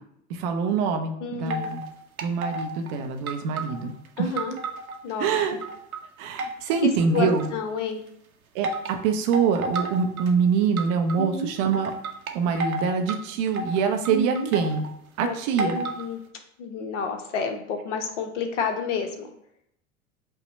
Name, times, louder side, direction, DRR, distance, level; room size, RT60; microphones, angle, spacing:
voice 1, 0.3-1.8 2.2-3.9 4.2-4.3 5.2-5.5 6.2-7.5 8.5-11.9 12.3-14.8 15.2-15.8, right 6 dB, 25° right, 5 dB, 0.3 m, -24 dB
voice 2, 1.2-1.7 4.2-4.6 5.0-5.6 6.8-8.0 11.1-11.5 14.1-14.5 15.2-16.2 16.6-19.3, left 4 dB, 55° left, 5 dB, 0.8 m, -30 dB
sound 1, 1.5-1.9 2.2-2.9 3.3-5.0 5.3-6.0 6.4-7.6 8.6-8.9 9.3-10.3 10.8-11.2 11.7-13.2 13.5-14.9 15.6-16.0, right 2 dB, 80° right, 0.6 m, -32 dB
5.4 x 2.1 x 3.9 m, 0.75 s
figure-of-eight pair, 85°, 42 cm